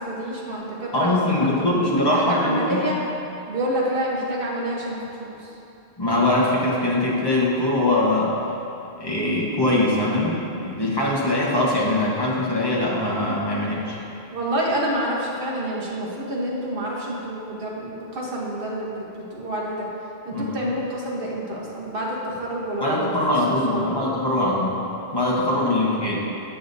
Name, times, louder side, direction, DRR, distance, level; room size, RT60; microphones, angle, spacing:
voice 1, 0.1-1.8 2.1-3.0 3.5-5.5 14.3-19.9 20.2-23.1 23.7-24.0, right 1 dB, 60° right, -4 dB, 1.2 m, -28 dB
voice 2, 0.9-2.9 6.0-8.3 9.0-14.0 20.3-20.7 22.8-24.8 25.1-26.2, left 1 dB, 25° left, -5 dB, 0.9 m, -22 dB
7.7 x 6.7 x 2.6 m, 2.7 s
omnidirectional pair, 1.1 m